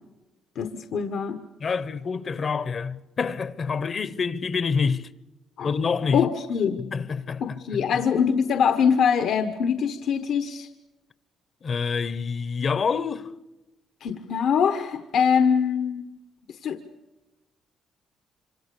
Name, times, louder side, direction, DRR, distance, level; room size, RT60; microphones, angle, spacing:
voice 1, 0.6-1.4 5.6-5.7 6.1-6.8 7.4-10.7 14.0-16.1 16.6-16.8, left 7 dB, 70° left, 1.2 m, -23 dB
voice 2, 1.6-5.1 5.6-6.3 6.8-8.0 11.6-13.3, left 5 dB, 45° left, 1.0 m, -27 dB
26.0 x 25.5 x 6.9 m
cardioid pair, 85°, 0 cm